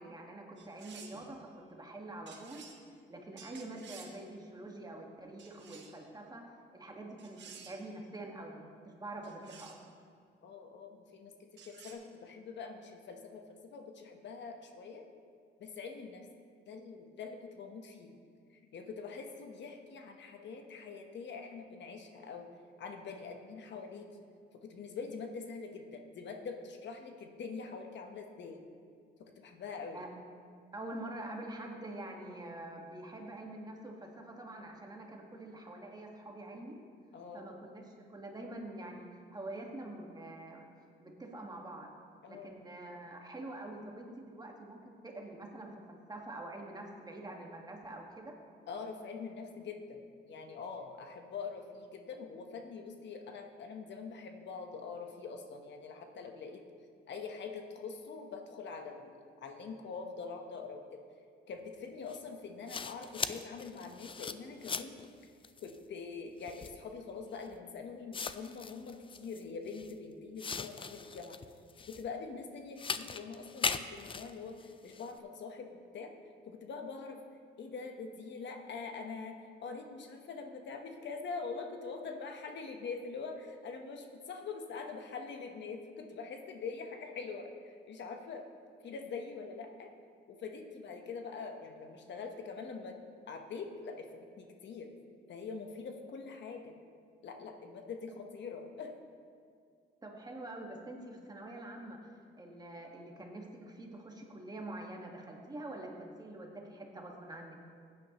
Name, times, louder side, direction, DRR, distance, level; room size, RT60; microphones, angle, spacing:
voice 1, 0.0-2.6 3.1-9.8 29.9-30.1 30.7-36.8 37.3-37.8 38.1-40.7 41.0-41.9 42.3-48.3 98.1-98.2 100.0-102.0 102.4-107.6, right 1 dB, 20° right, 0 dB, 1.6 m, -46 dB
sound 1, 0.6-1.3 2.3-2.8 3.4-4.2 5.4-6.0 7.2-7.9 9.2-9.8 11.6-11.9, right 6 dB, 65° right, 1.4 m, -53 dB
voice 2, 10.4-11.3 11.6-15.0 15.6-16.3 16.7-18.1 18.7-22.5 22.8-24.2 24.6-28.6 29.4-30.0 37.1-37.5 42.2-42.6 48.7-50.0 50.3-56.6 57.1-61.0 61.5-65.0 65.6-71.4 71.9-76.1 76.5-77.2 77.6-88.5 88.8-89.9 90.3-93.0 93.3-94.9 95.3-96.7 97.2-98.9, left 5 dB, 65° left, 4 dB, 1.1 m, -44 dB
sound 2, 62.1-62.2 62.7-65.1 65.4-65.8 66.4-66.8 67.5-67.6 68.1-69.9 70.4-72.1 72.8-75.1, left 5 dB, 25° left, 0.4 m, -39 dB
15.5 x 9.1 x 3.0 m, 2.2 s
cardioid pair, 90°, 20 cm